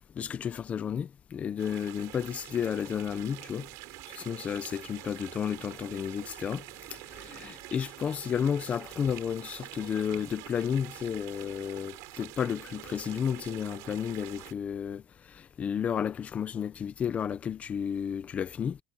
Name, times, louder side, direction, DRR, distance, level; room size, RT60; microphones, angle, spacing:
voice 1, 0.2-3.7 4.1-6.6 7.1-15.0 15.3-18.8, left 8 dB, 25° left, 0.7 m, -32 dB
sound 1, 1.6-14.5, right 22 dB, 65° right, 4.7 m, -46 dB
cardioid pair, 170°, 6 cm